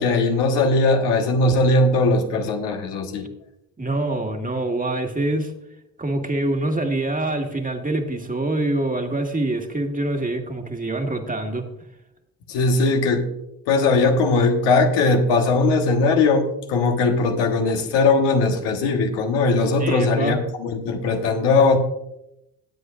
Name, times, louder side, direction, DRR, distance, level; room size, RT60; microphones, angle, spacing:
voice 1, 0.0-3.3 12.5-13.3 13.7-21.8, left 3 dB, 75° left, 3 dB, 1.4 m, -19 dB
voice 2, 3.8-5.5 6.0-11.7 19.8-20.4, right 2 dB, 20° right, 4 dB, 1.8 m, -25 dB
18.0 x 7.9 x 2.5 m, 0.84 s
hypercardioid pair, 50°, 42 cm